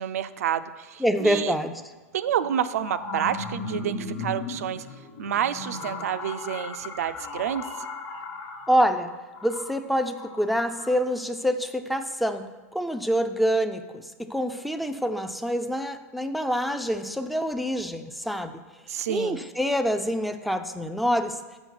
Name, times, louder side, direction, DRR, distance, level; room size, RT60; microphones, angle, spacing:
voice 1, 0.0-1.5 2.1-4.8 5.2-7.6 18.9-19.4, right 9 dB, 80° right, 12 dB, 0.4 m, -29 dB
voice 2, 1.0-1.7 8.7-9.1 9.4-18.6 19.1-21.4, equal, ahead, 8 dB, 0.3 m, -26 dB
sound 1, 1.6-1.7 2.4-10.9, left 3 dB, 40° left, 1.0 m, -37 dB
6.0 x 5.3 x 5.6 m, 1.3 s
hypercardioid pair, 120°, 8 cm